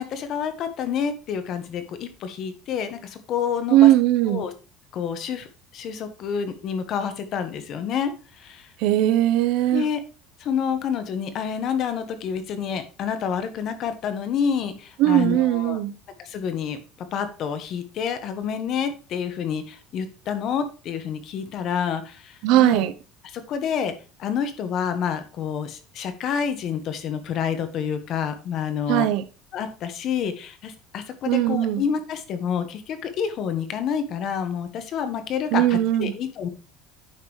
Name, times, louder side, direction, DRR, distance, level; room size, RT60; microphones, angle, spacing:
voice 1, 0.0-3.9 4.3-4.5 4.9-5.5 5.7-8.7 9.7-10.0 10.4-15.8 16.2-16.8 17.1-22.8 23.3-23.9 24.2-29.1 29.5-36.5, left 7 dB, 50° left, 1.3 m, -28 dB
voice 2, 3.7-4.5 8.8-9.9 15.0-15.9 22.4-22.9 28.9-29.2 31.3-31.8 35.5-36.2, right 14 dB, 70° right, 0.7 m, -19 dB
9.4 x 5.4 x 3.1 m
cardioid pair, 140°, 0 cm